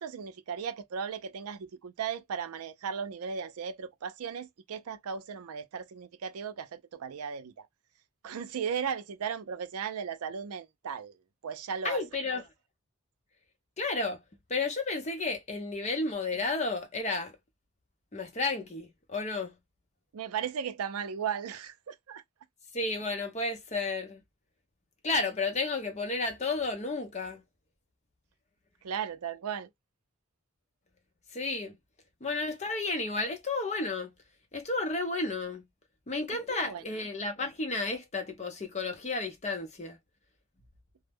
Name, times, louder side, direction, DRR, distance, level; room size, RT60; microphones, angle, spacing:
voice 1, 0.0-7.7 8.2-11.2 11.4-12.0 20.1-22.2 28.8-29.7 36.5-36.8, right 7 dB, 80° right, 0.4 m, -36 dB
voice 2, 11.8-12.4 13.8-14.2 14.5-17.4 18.1-19.6 22.7-24.2 25.0-27.4 31.3-31.8 32.2-34.1 34.5-35.7 36.1-40.0, left 3 dB, 30° left, 0.6 m, -32 dB
2.1 x 2.0 x 3.3 m
head